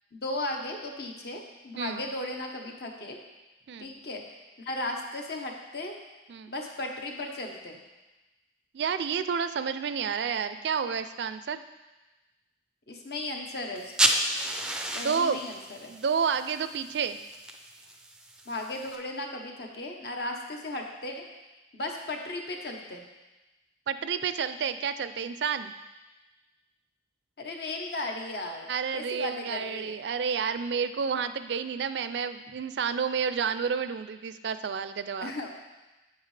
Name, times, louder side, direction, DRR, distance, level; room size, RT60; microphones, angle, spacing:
voice 1, 0.1-3.2 3.8-5.9 6.5-7.8 12.9-14.1 14.9-15.9 18.5-21.2 21.7-23.0 27.4-30.0 35.2-35.5, left 2 dB, 60° left, 2 dB, 1.0 m, -36 dB
voice 2, 8.7-11.6 15.0-15.4 15.9-17.2 23.9-25.7 28.7-35.3, right 6 dB, 70° right, 11 dB, 0.4 m, -30 dB
sound 1, 13.7-18.9, right 1 dB, 5° right, 0.4 m, -32 dB
8.3 x 7.6 x 3.3 m, 1.1 s
head